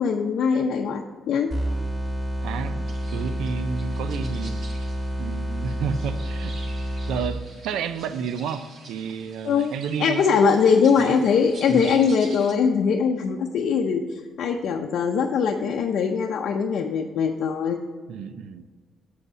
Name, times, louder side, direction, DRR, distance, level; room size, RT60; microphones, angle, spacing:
voice 1, 0.0-1.5 9.4-9.7 10.0-14.0 14.4-17.8, left 6 dB, 75° left, 1 dB, 0.6 m, -21 dB
sound 1, 1.5-7.5, right 1 dB, 20° right, 2.1 m, -29 dB
voice 2, 2.4-4.9 5.2-6.6 7.1-10.4 11.0-11.2 11.7-12.0 18.1-18.6, right 6 dB, 85° right, 12 dB, 0.5 m, -31 dB
sound 2, 2.9-12.5, right 3 dB, 60° right, 1.7 m, -46 dB
8.0 x 5.4 x 6.2 m, 1.5 s
cardioid pair, 90°, 0 cm